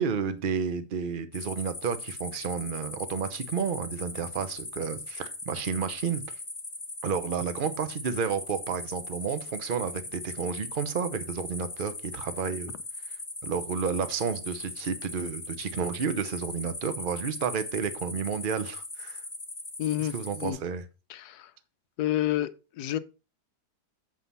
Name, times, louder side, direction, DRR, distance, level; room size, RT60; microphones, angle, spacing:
voice 1, 0.0-6.2 7.0-12.7 13.4-19.2 20.1-20.8, right 6 dB, 45° right, 0.7 m, -31 dB
sound 1, 1.3-20.5, left 2 dB, 20° left, 1.5 m, -39 dB
voice 2, 19.8-20.1 20.4-20.6 21.1-21.5 22.0-22.5 22.8-23.0, left 13 dB, 70° left, 1.2 m, -28 dB
7.8 x 4.7 x 5.5 m
omnidirectional pair, 1.8 m